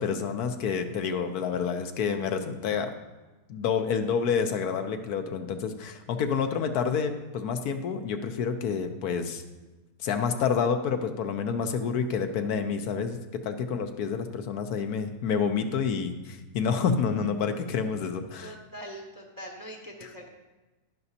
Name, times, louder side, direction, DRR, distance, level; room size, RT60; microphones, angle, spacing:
voice 1, 0.0-2.9 3.5-9.4 10.0-13.2 13.4-18.5, left 6 dB, 75° left, 7 dB, 1.2 m, -28 dB
voice 2, 18.4-20.3, equal, 20° right, 1 dB, 0.7 m, -42 dB
11.0 x 10.5 x 2.8 m, 1.2 s
omnidirectional pair, 1.6 m